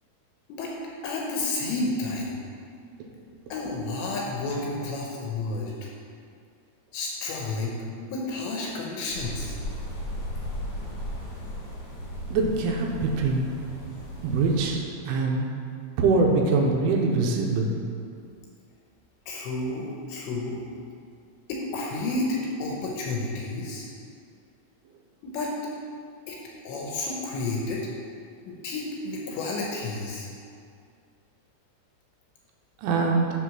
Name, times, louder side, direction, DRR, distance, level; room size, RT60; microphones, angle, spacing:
voice 1, 1.0-2.3 3.5-5.9 6.9-9.6 19.3-20.6 21.5-23.9 25.2-25.5 26.3-26.4 26.7-27.9 28.5-30.3, left 2 dB, 75° left, -2 dB, 2.9 m, -31 dB
sound 1, 9.1-14.8, equal, 50° left, 2.0 m, -36 dB
voice 2, 12.3-13.5 14.2-15.5 16.0-17.8 32.8-33.3, right 3 dB, 80° right, 0 dB, 3.2 m, -23 dB
11.0 x 3.9 x 6.1 m, 2.3 s
omnidirectional pair, 5.7 m